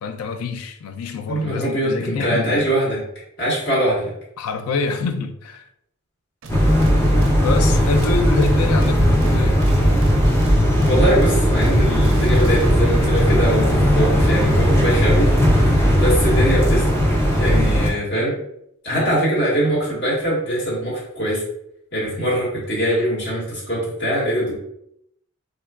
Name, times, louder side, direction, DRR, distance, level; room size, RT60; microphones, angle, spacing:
voice 1, 0.0-2.7 4.4-5.7 7.4-9.6 18.9-19.2, left 4 dB, 80° left, 0.4 m, -26 dB
voice 2, 1.3-3.0 3.4-4.1 7.6-7.7 10.8-15.3 16.0-16.8 17.4-18.4 18.8-21.4 21.9-24.5, right 1 dB, 50° left, 1.4 m, -22 dB
sound 1, 6.4-13.1, right 1 dB, 60° right, 0.4 m, -34 dB
sound 2, 6.5-17.9, equal, 10° left, 0.4 m, -17 dB
3.7 x 2.3 x 2.2 m
head